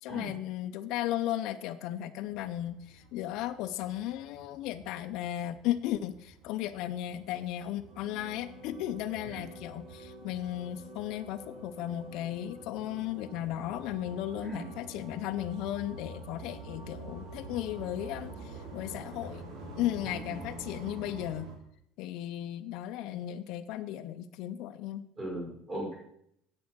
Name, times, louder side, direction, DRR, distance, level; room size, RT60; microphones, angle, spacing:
voice 1, 0.0-19.4 19.8-21.5 22.0-25.1, left 12 dB, 60° left, 10 dB, 0.6 m, -35 dB
sound 1, 2.2-21.6, right 2 dB, 80° right, 2.8 m, -49 dB
sound 2, 7.7-21.3, right 1 dB, 60° right, 3.9 m, -50 dB
voice 2, 20.0-20.4 25.2-25.9, right 1 dB, 25° right, -1 dB, 4.2 m, -38 dB
9.5 x 7.7 x 6.1 m, 0.74 s
cardioid pair, 165°, 0 cm